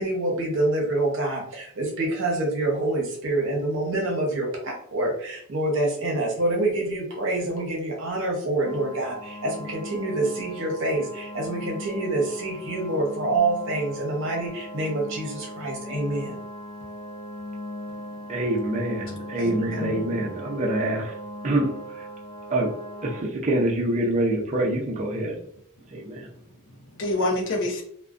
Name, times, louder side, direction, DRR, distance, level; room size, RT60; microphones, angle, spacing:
voice 1, 0.0-16.4, right 2 dB, 60° right, 0.8 m, -26 dB
sound 1, 8.6-23.2, left 1 dB, 20° left, 0.6 m, -38 dB
voice 2, 18.3-21.1 21.4-21.8 22.5-22.8 23.0-25.4 25.9-26.3, right 1 dB, 35° right, 0.5 m, -25 dB
voice 3, 19.4-20.0 26.7-27.8, left 1 dB, 60° left, 0.5 m, -28 dB
2.6 x 2.1 x 2.3 m
head